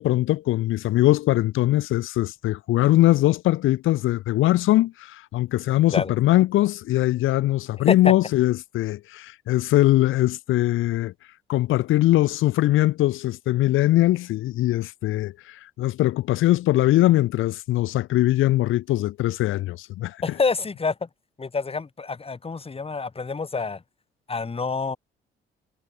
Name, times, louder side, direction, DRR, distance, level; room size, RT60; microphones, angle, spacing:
voice 1, 0.0-11.1 11.5-20.2, left 16 dB, 90° left, 2.1 m, -21 dB
voice 2, 20.2-21.1 21.4-23.8 24.3-25.0, left 4 dB, 30° left, 3.5 m, -27 dB
cardioid pair, 90°, 20 cm